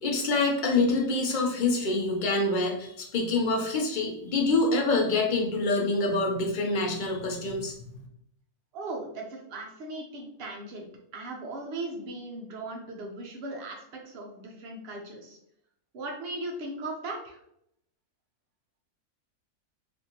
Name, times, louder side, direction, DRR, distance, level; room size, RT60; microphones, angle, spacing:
voice 1, 0.0-7.7, left 3 dB, 50° left, 1 dB, 0.6 m, -26 dB
voice 2, 8.7-10.9 11.1-15.4 15.9-17.4, right 2 dB, 50° right, 0 dB, 0.9 m, -38 dB
3.6 x 2.5 x 2.8 m, 0.73 s
omnidirectional pair, 1.4 m